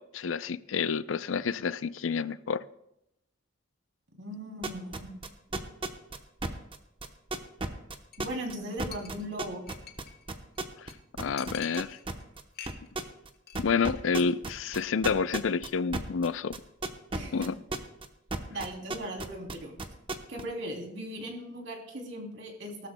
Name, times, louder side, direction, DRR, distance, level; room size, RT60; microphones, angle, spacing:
voice 1, 0.0-2.6 10.8-10.9 11.2-12.0 13.6-16.6 17.3-17.5, left 5 dB, 90° left, 0.5 m, -29 dB
voice 2, 4.2-5.1 8.2-9.7 17.1-17.5 18.5-19.7 20.3-22.9, right 1 dB, 70° right, 3.0 m, -38 dB
sound 1, 4.6-10.9 11.2-13.3 13.5-18.1 18.3-20.4, right 2 dB, 25° right, 0.9 m, -33 dB
Chink clink, 8.1-8.3 8.6-8.7 8.9-10.2 10.6-10.7 10.9-11.0 11.4-12.2 12.5-13.1 13.3-13.6 13.9-14.2 14.6-14.7, left 8 dB, 50° left, 1.3 m, -46 dB
18.5 x 13.0 x 2.2 m
head